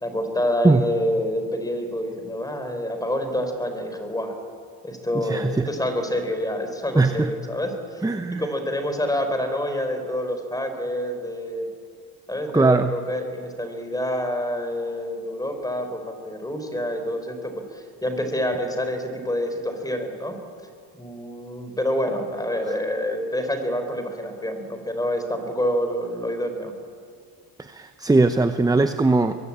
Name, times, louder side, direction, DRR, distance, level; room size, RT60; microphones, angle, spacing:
voice 1, 0.0-4.4 4.8-11.7 12.3-20.4 20.9-26.7, left 1 dB, 10° left, 6 dB, 4.2 m, -27 dB
voice 2, 5.2-5.6 7.0-7.3 8.0-8.4 12.5-12.9 27.6-29.4, right 3 dB, 10° right, 9 dB, 0.8 m, -20 dB
25.5 x 22.0 x 8.7 m, 2.2 s
cardioid pair, 125°, 46 cm